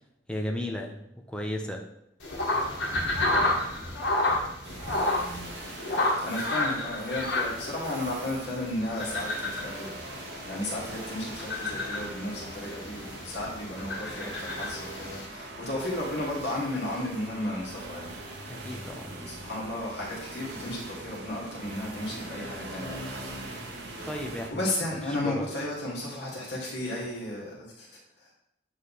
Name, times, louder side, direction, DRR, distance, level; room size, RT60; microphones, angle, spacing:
voice 1, 0.3-0.9 1.3-1.8 18.5-19.1 24.0-24.7 24.9-25.0 25.2-25.4, left 1 dB, 5° left, 1 dB, 0.7 m, -34 dB
sound 1, 2.2-15.3, left 2 dB, 80° left, 1.6 m, -31 dB
sound 2, 4.6-24.5, right 2 dB, 60° right, 1.0 m, -42 dB
voice 2, 6.2-18.1 18.7-23.0 23.3-27.9 28.2-28.3, left 1 dB, 65° left, -4 dB, 1.8 m, -34 dB
7.6 x 3.3 x 4.1 m, 0.77 s
head